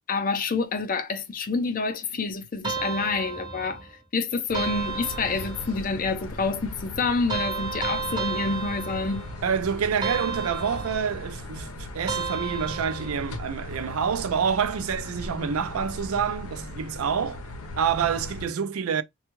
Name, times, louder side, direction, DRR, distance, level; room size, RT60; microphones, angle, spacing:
voice 1, 0.1-9.3, left 4 dB, 40° left, 0.5 m, -28 dB
sound 1, 2.6-4.0 4.5-5.9 7.3-9.5 10.0-11.3 12.1-13.4, right 5 dB, 20° right, 0.7 m, -33 dB
sound 2, 4.5-18.4, left 1 dB, 85° left, 0.7 m, -38 dB
voice 2, 9.4-17.4 17.8-19.0, right 7 dB, 75° right, 0.4 m, -27 dB
3.4 x 2.3 x 3.0 m
head